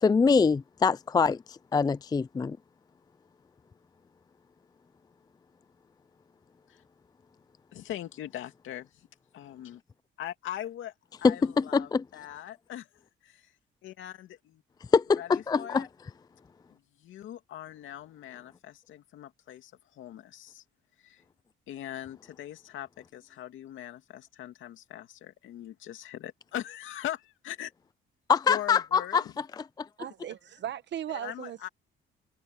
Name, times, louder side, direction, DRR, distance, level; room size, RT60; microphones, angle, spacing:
voice 1, 0.0-2.6 11.2-12.0 14.9-15.9 28.3-29.2 29.8-29.9, left 5 dB, 20° left, 0.4 m, -24 dB
voice 2, 7.7-9.1 9.3-9.8 10.2-13.5 13.8-14.6 15.2-15.9 16.7-20.6 21.0-21.2 21.7-27.7 28.5-29.3 31.1-31.7, left 12 dB, 80° left, 2.5 m, -41 dB
voice 3, 30.0-31.7, right 10 dB, 65° right, 1.3 m, -37 dB
cardioid pair, 90°, 20 cm